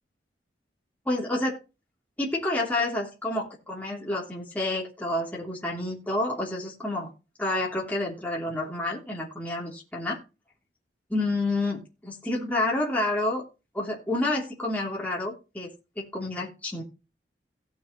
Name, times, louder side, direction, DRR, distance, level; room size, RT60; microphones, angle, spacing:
voice 1, 1.1-1.6 2.2-7.1 7.4-10.2 11.1-13.4 13.7-16.8, left 2 dB, 10° left, -4 dB, 2.9 m, -29 dB
17.5 x 7.1 x 2.9 m, 0.30 s
head